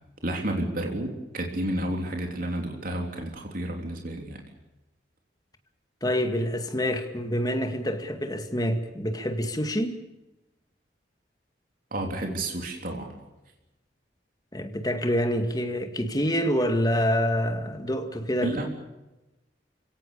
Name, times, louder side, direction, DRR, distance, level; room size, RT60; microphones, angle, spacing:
voice 1, 0.2-4.4 11.9-13.1 18.4-18.7, right 1 dB, 50° right, 2 dB, 3.5 m, -31 dB
voice 2, 6.0-10.0 14.5-18.6, equal, 20° left, 6 dB, 2.1 m, -27 dB
29.0 x 17.5 x 6.9 m, 1.0 s
head